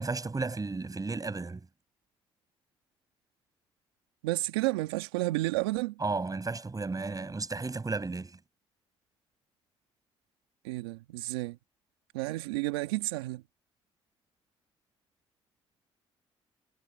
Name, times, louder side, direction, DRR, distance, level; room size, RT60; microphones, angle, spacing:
voice 1, 0.0-1.7 6.0-8.4, right 3 dB, 30° right, 7.1 m, -33 dB
voice 2, 4.2-6.0 10.6-11.6 12.1-13.4, right 20 dB, 90° right, 1.7 m, -31 dB
hypercardioid pair, 50°, 13 cm